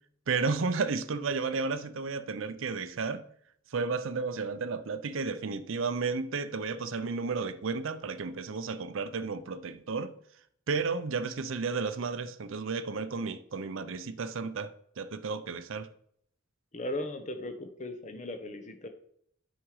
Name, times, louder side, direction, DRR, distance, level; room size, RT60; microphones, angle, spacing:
voice 1, 0.3-3.2 3.7-10.1 10.7-15.9, right 4 dB, 70° right, 0.5 m, -32 dB
voice 2, 16.7-18.9, left 1 dB, 35° left, 0.8 m, -37 dB
8.8 x 5.0 x 4.8 m
head